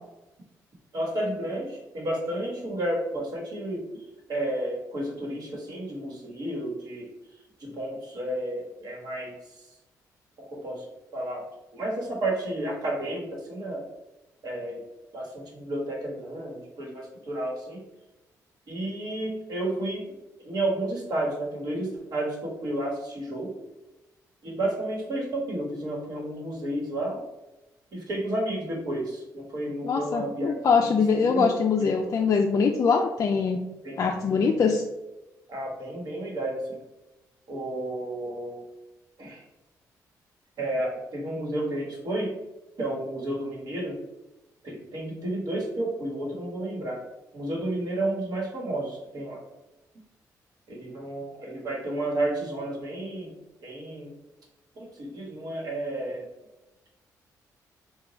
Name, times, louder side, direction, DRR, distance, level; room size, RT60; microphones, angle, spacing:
voice 1, 0.9-3.9 4.3-7.1 7.6-9.7 10.4-10.9 11.1-11.5 11.7-13.8 14.4-14.8 15.1-17.8 18.7-20.1 20.4-23.5 24.4-27.2 27.9-30.5 30.8-31.5 31.8-31.9 33.8-34.0 35.5-36.8 37.5-38.6 39.2-39.4 40.6-42.3 42.8-44.0 44.6-47.0 47.3-49.4 50.7-53.3 53.6-54.1 54.8-56.3, right 1 dB, 60° right, -1 dB, 1.2 m, -31 dB
voice 2, 29.8-33.6 34.0-34.8, left 5 dB, 50° left, 2 dB, 0.3 m, -23 dB
2.9 x 2.2 x 4.0 m, 0.99 s
supercardioid pair, 65°, 7 cm